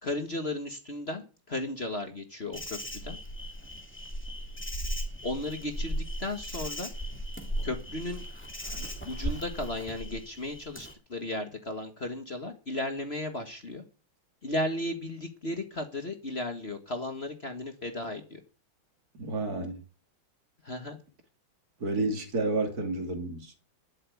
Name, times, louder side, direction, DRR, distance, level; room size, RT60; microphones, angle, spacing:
voice 1, 0.0-3.2 5.2-6.9 7.6-8.2 8.8-13.8 14.4-18.4 20.6-21.0, left 1 dB, 30° left, 1.6 m, -35 dB
Insect, 2.5-10.9, equal, 5° left, 2.3 m, -37 dB
voice 2, 19.1-19.8 21.8-23.5, right 2 dB, 45° right, 2.8 m, -30 dB
12.0 x 7.1 x 9.2 m
omnidirectional pair, 2.3 m